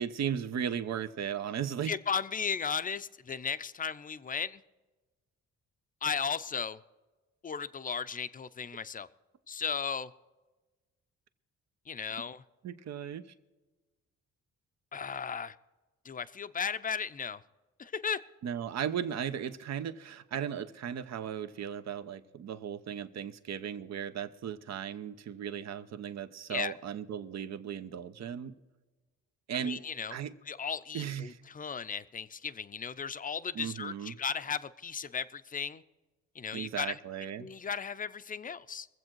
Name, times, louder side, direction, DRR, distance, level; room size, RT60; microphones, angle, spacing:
voice 1, 0.0-1.9 12.6-13.2 18.4-28.6 29.5-29.8 30.1-30.3 30.9-31.4 33.5-34.2 36.5-37.5, right 8 dB, 60° right, 11 dB, 1.0 m, -36 dB
voice 2, 1.9-4.6 6.0-6.8 7.4-9.1 9.5-10.1 11.9-12.4 14.9-15.6 16.0-17.4 17.8-18.2 26.5-26.7 29.5-30.2 30.5-35.8 36.3-37.0 37.4-38.9, left 6 dB, 25° left, 13 dB, 0.6 m, -35 dB
23.0 x 7.7 x 4.7 m, 1.2 s
cardioid pair, 90°, 30 cm